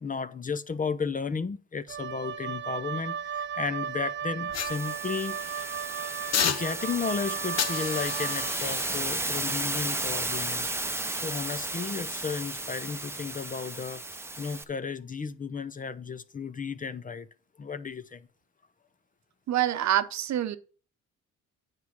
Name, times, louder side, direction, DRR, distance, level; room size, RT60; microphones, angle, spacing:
voice 1, 0.0-5.8 6.4-10.7 11.2-17.3 17.6-18.3, left 5 dB, 25° left, 0.6 m, -34 dB
Wind instrument woodwind instrument, 1.9-8.6, right 8 dB, 40° right, 0.4 m, -35 dB
sound 1, 4.5-5.5 6.3-7.1 7.6-10.8 11.3-11.5, left 8 dB, 60° left, 0.9 m, -34 dB
sound 2, 4.6-14.6, right 2 dB, 10° right, 0.8 m, -33 dB
voice 2, 19.5-20.6, right 12 dB, 65° right, 0.8 m, -26 dB
9.4 x 4.8 x 5.9 m
cardioid pair, 90°, 30 cm